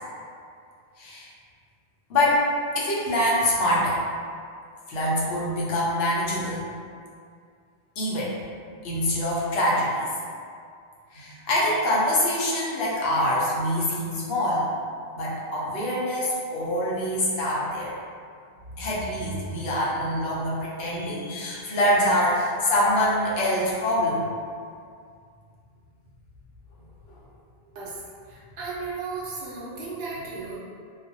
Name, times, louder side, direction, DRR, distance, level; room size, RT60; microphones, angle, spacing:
voice 1, 1.0-1.3 2.1-2.5 2.7-4.0 4.9-6.6 8.0-8.4 8.8-10.1 11.1-14.7 15.1-17.9 18.8-24.2, left 1 dB, 80° left, -6 dB, 0.8 m, -25 dB
voice 2, 28.3-30.5, right 4 dB, 75° right, -6 dB, 0.9 m, -35 dB
2.4 x 2.0 x 2.6 m, 2.2 s
omnidirectional pair, 1.0 m